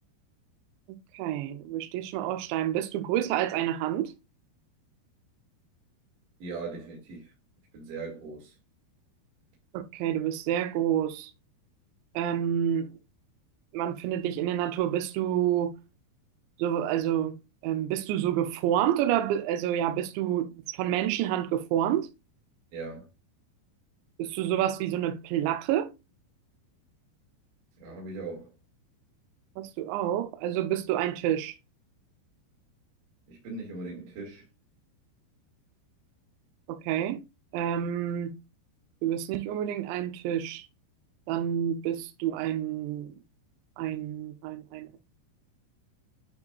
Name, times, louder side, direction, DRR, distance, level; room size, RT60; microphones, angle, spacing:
voice 1, 0.9-4.1 9.7-11.3 12.2-12.9 13.7-15.8 16.6-17.3 17.6-22.1 24.2-25.9 29.6-31.6 36.7-37.2 37.5-38.3 39.0-40.7 41.3-43.1 43.8-45.0, right 11 dB, 80° right, 2.8 m, -28 dB
voice 2, 6.4-7.3 7.7-8.5 22.7-23.1 27.8-28.5 33.3-34.4, right 3 dB, 50° right, 3.1 m, -39 dB
9.5 x 4.9 x 2.3 m
omnidirectional pair, 5.6 m